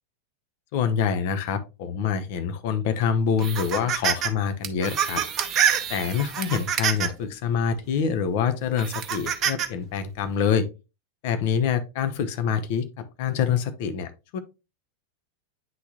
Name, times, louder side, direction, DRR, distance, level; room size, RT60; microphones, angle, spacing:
voice 1, 0.7-5.2 5.9-10.7 11.2-14.4, left 7 dB, 50° left, 9 dB, 0.7 m, -26 dB
sound 1, 3.4-4.3 4.6-7.2 7.8-8.0 8.8-9.7, right 8 dB, 30° right, 0.8 m, -26 dB
9.3 x 3.5 x 2.9 m, 0.28 s
figure-of-eight pair, 90°, 0 cm